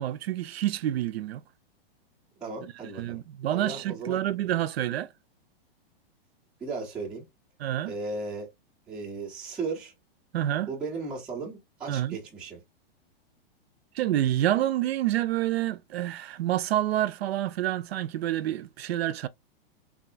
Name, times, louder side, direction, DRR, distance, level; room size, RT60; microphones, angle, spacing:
voice 1, 0.0-1.4 3.0-5.1 7.6-7.9 10.3-10.7 11.9-12.2 14.0-19.3, right 13 dB, 80° right, 0.5 m, -28 dB
voice 2, 2.4-3.2 3.5-4.2 6.6-7.2 7.9-8.5 8.9-9.9 10.7-12.6, right 4 dB, 5° right, 0.4 m, -36 dB
3.6 x 2.3 x 2.4 m
hypercardioid pair, 165°, 30 cm